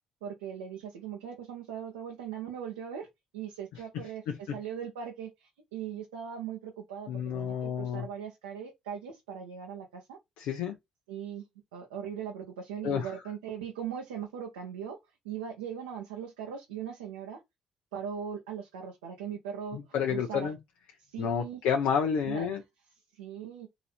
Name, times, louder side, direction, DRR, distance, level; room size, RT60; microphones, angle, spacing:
voice 1, 0.2-3.1 3.3-10.2 11.1-11.5 11.7-15.0 15.2-17.4 17.9-19.8 20.1-20.5 21.0-21.6 22.3-22.5 23.1-23.7, right 8 dB, 90° right, 0.8 m, -39 dB
voice 2, 4.3-4.6 7.1-8.1 10.4-10.7 12.8-13.1 19.7-20.6 21.2-22.6, left 7 dB, 75° left, 0.6 m, -30 dB
3.9 x 2.8 x 4.2 m
hypercardioid pair, 55°, 2 cm